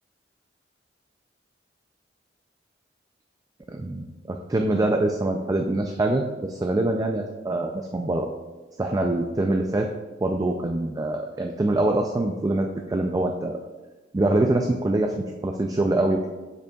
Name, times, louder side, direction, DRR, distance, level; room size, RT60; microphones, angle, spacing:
voice 1, 3.7-8.3 8.8-9.9 10.2-13.6 14.1-16.3, right 2 dB, 20° right, 3 dB, 0.3 m, -24 dB
7.9 x 6.9 x 2.3 m, 1.2 s
head